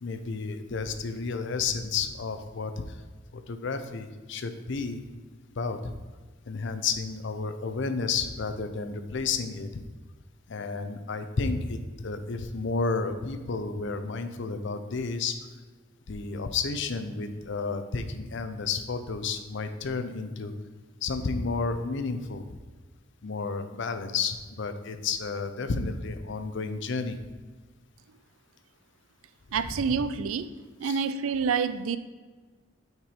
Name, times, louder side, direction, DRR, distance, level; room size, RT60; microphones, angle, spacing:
voice 1, 0.0-2.8 3.3-5.0 5.6-5.9 6.5-9.7 10.5-15.3 16.1-20.5 21.0-22.4 23.2-27.2 29.7-30.0 30.8-31.0, left 4 dB, 60° left, 9 dB, 0.5 m, -31 dB
voice 2, 29.5-30.5 30.8-32.0, right 6 dB, 85° right, 13 dB, 0.4 m, -27 dB
5.9 x 4.5 x 4.8 m, 1.4 s
head